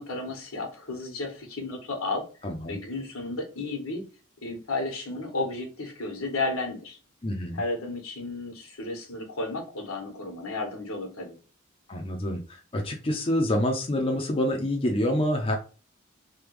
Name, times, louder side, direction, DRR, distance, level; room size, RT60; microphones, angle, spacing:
voice 1, 0.0-2.3 2.7-4.0 4.4-7.0 7.5-11.4, left 2 dB, 85° left, 2 dB, 1.3 m, -33 dB
voice 2, 2.4-2.8 7.2-7.6 11.9-15.5, left 1 dB, 25° left, 1 dB, 0.5 m, -27 dB
3.3 x 2.2 x 3.1 m, 0.35 s
head